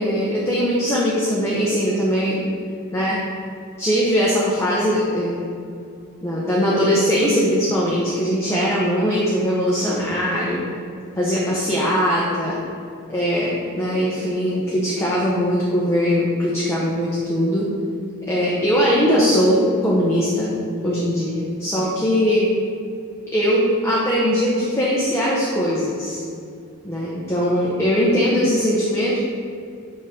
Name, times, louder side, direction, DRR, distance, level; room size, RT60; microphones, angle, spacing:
voice 1, 0.0-2.4 2.9-3.2 3.8-5.5 6.2-10.6 11.2-12.6 13.1-17.7 18.3-20.5 20.8-22.5 23.3-26.2 26.8-29.2, equal, 10° left, -6 dB, 0.8 m, -20 dB
7.1 x 5.6 x 3.7 m, 2.4 s
head